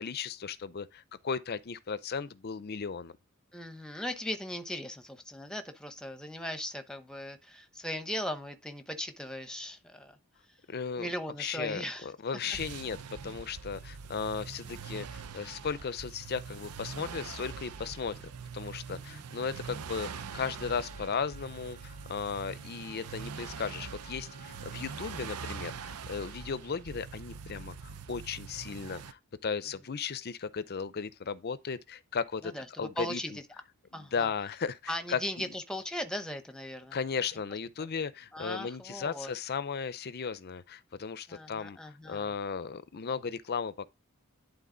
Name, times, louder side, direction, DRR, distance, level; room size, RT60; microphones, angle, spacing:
voice 1, 0.0-3.1 10.7-11.1 11.4-33.4 33.9-35.5 36.9-41.8 42.1-43.9, left 6 dB, 45° left, 0.5 m, -36 dB
voice 2, 3.5-10.1 11.0-12.1 18.9-19.2 32.4-33.4 33.9-34.3 34.9-37.0 37.8-37.9 38.3-39.3 41.3-42.3, equal, 5° left, 0.8 m, -38 dB
sound 1, 12.4-29.1, right 6 dB, 90° right, 0.6 m, -43 dB
Bowed string instrument, 19.9-26.6, right 3 dB, 35° right, 3.2 m, -57 dB
11.0 x 3.9 x 3.8 m
head